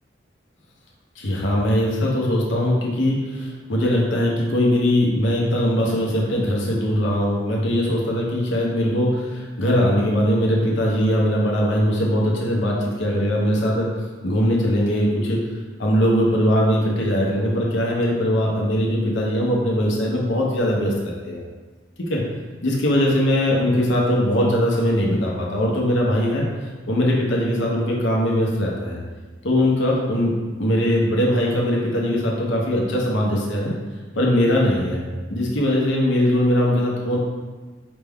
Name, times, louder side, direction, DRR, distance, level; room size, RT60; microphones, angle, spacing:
voice 1, 1.2-13.9 14.2-15.4 15.8-21.4 22.1-22.2 22.6-26.4 26.9-29.0 29.4-30.3 30.6-33.7 34.1-35.0 35.3-37.2, equal, 85° left, -2 dB, 0.9 m, -21 dB
5.0 x 2.3 x 3.5 m, 1.4 s
head